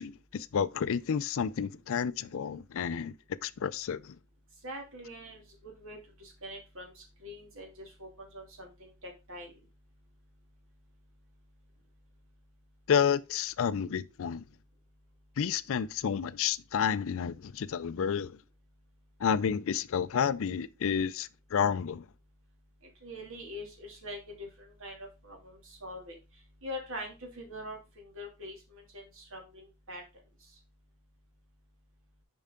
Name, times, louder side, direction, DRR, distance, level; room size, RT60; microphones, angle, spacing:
voice 1, 0.0-3.1 3.4-4.2 12.9-14.4 15.4-18.3 19.2-22.0, left 7 dB, 65° left, 0.4 m, -30 dB
voice 2, 4.6-9.5 23.0-26.2 26.6-30.0, equal, 65° right, 2.6 m, -44 dB
7.0 x 5.5 x 3.7 m
head